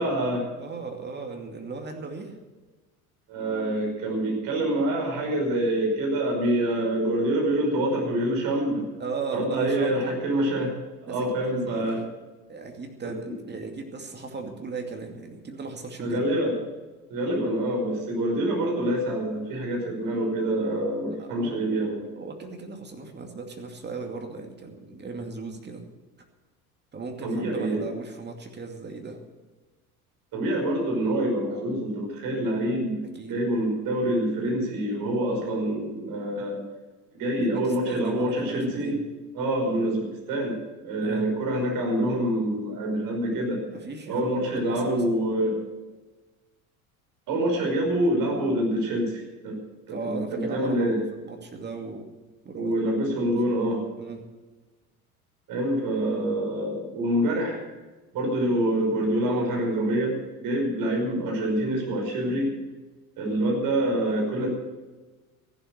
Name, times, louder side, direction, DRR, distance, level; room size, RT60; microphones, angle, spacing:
voice 1, 0.0-0.5 3.3-8.8 9.3-10.7 11.0-12.0 13.0-13.3 16.0-16.6 17.1-22.0 27.2-27.9 30.3-33.0 33.3-36.6 37.1-39.0 39.3-43.6 44.1-45.6 47.3-49.6 49.9-51.0 52.5-53.8 55.5-57.6 58.1-62.6 63.2-64.5, right 1 dB, 50° right, 1 dB, 5.6 m, -26 dB
voice 2, 0.6-2.4 9.0-10.1 11.1-11.9 12.5-16.3 21.2-21.6 21.9-25.8 26.9-29.2 33.1-33.4 37.4-39.0 41.0-41.3 43.7-45.0 49.9-52.0 52.4-52.7 53.2-53.3 54.0-54.2, right 4 dB, 25° right, 3 dB, 2.5 m, -37 dB
14.5 x 12.0 x 6.5 m, 1.2 s
figure-of-eight pair, 65°, 44 cm